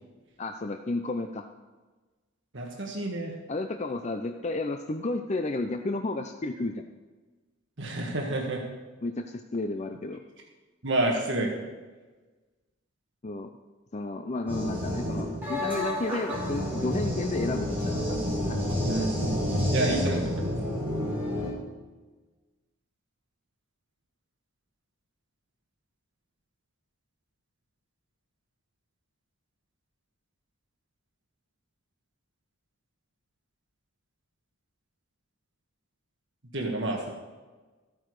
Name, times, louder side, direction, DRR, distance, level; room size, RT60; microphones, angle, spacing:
voice 1, 0.4-1.5 3.5-6.8 9.0-10.2 13.2-13.5 13.9-18.8, left 2 dB, 35° left, 6 dB, 0.5 m, -32 dB
voice 2, 2.5-3.3 7.8-8.6 10.8-11.6 18.8-20.5 36.5-37.1, right 2 dB, 60° right, 0 dB, 1.6 m, -29 dB
sound 1, 14.5-21.5, left 1 dB, 10° right, 4.3 m, -29 dB
14.0 x 8.9 x 4.8 m, 1.3 s
head